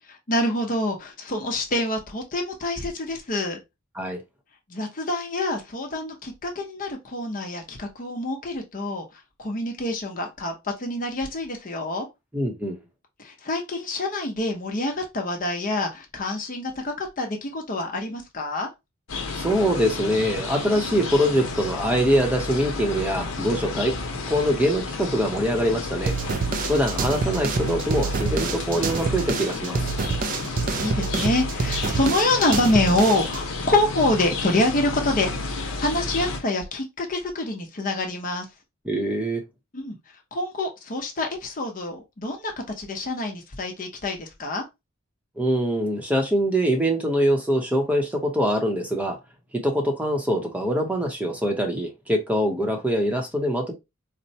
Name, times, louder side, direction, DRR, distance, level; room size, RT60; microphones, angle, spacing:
voice 1, 0.3-3.6 4.7-9.1 9.4-12.1 13.2-18.7 30.4-35.3 35.6-38.5 39.7-39.9 40.3-44.6, left 2 dB, 40° left, 0.7 m, -26 dB
voice 2, 12.3-12.8 19.3-23.9 24.3-26.1 26.7-29.8 38.8-39.4 45.4-49.2 49.5-53.7, equal, 5° right, 0.7 m, -23 dB
sound 1, 19.1-36.4, left 3 dB, 80° left, 0.8 m, -31 dB
sound 2, 26.1-33.4, right 4 dB, 45° right, 0.4 m, -27 dB
4.2 x 2.1 x 2.7 m
head